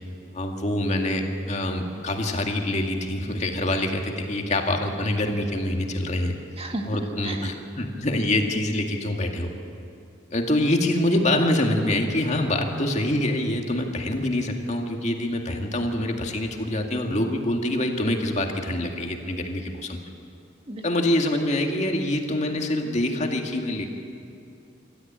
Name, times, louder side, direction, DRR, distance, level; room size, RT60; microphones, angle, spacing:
voice 1, 0.3-6.3 6.9-9.5 10.3-20.1 20.8-23.9, left 1 dB, 40° left, 2 dB, 2.1 m, -25 dB
voice 2, 6.6-7.5 20.7-21.1, right 1 dB, 35° right, 3 dB, 1.7 m, -34 dB
26.5 x 13.5 x 8.8 m, 2.5 s
head